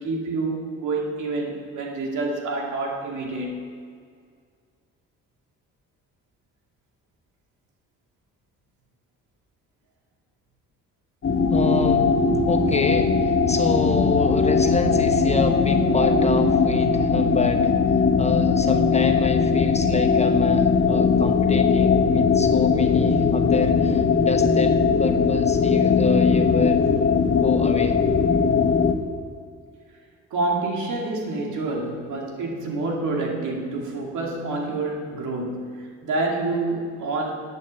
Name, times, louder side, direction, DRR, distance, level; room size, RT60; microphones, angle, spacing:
voice 1, 0.0-3.7 30.3-37.3, right 2 dB, 75° right, 0 dB, 2.5 m, -28 dB
sound 1, 11.2-28.9, left 5 dB, 45° left, 1.6 m, -19 dB
voice 2, 11.5-26.9 27.4-28.0, left 3 dB, 20° left, 5 dB, 1.1 m, -28 dB
11.0 x 8.6 x 7.5 m, 2.1 s
cardioid pair, 90°, 30 cm